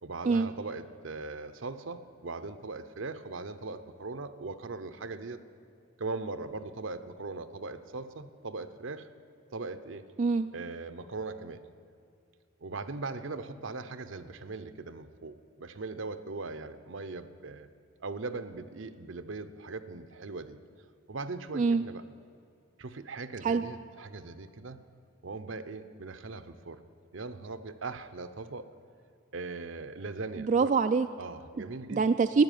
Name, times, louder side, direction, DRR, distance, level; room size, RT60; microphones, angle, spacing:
voice 1, 0.0-5.4 6.0-9.1 9.5-10.1 10.5-11.6 12.6-17.7 18.0-20.6 21.1-22.0 22.8-24.8 25.2-26.8 27.1-28.7 29.3-30.7 31.2-32.1, right 3 dB, 75° right, 11 dB, 0.8 m, -39 dB
voice 2, 10.2-10.5 21.5-21.9 23.4-23.6 30.4-31.1 31.9-32.4, right 4 dB, 40° right, 9 dB, 0.3 m, -25 dB
13.5 x 9.6 x 9.3 m, 2.4 s
head